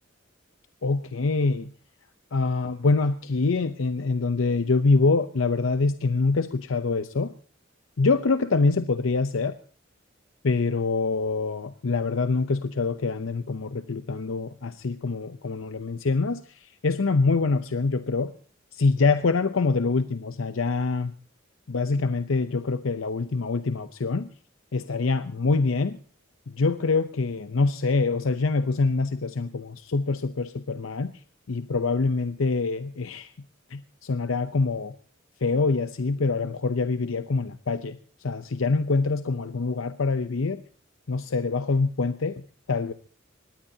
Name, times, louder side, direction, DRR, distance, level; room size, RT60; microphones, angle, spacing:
voice 1, 0.8-1.7 2.3-7.3 8.0-9.6 10.4-18.3 18.7-21.1 21.7-24.3 24.7-26.0 26.6-31.1 31.5-33.3 33.7-35.0 35.4-38.0 38.2-40.6 41.1-42.4 42.7-42.9, left 3 dB, 75° left, 10 dB, 0.7 m, -25 dB
24.0 x 19.0 x 2.8 m, 0.37 s
head